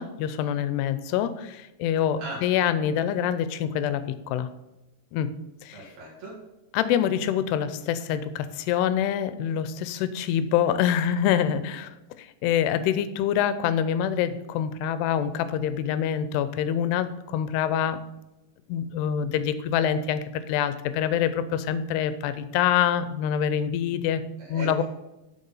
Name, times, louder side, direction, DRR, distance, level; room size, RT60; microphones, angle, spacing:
voice 1, 0.0-4.5 5.1-5.3 5.6-5.8 6.7-18.0 18.7-24.2 24.5-24.8, left 9 dB, 85° left, 13 dB, 2.7 m, -26 dB
voice 2, 5.7-6.4 24.4-24.8, right 1 dB, 45° right, -6 dB, 3.1 m, -38 dB
7.9 x 6.9 x 5.5 m, 0.97 s
omnidirectional pair, 4.7 m